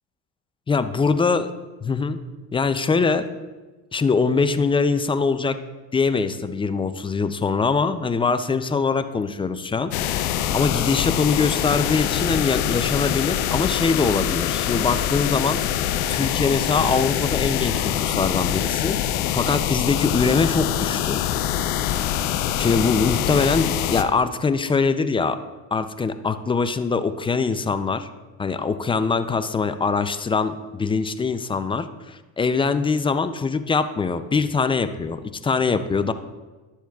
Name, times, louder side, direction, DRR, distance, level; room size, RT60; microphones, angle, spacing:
voice 1, 0.7-1.5 1.8-2.2 2.5-3.3 3.9-5.6 5.9-9.9 10.5-15.6 16.1-21.2 22.6-25.4 25.7-28.1 28.4-36.1, left 4 dB, 15° left, 11 dB, 0.3 m, -23 dB
sound 1, 9.9-24.0, left 10 dB, 90° left, 0.6 m, -24 dB
12.0 x 7.1 x 2.3 m, 1.2 s
supercardioid pair, 85°, 41 cm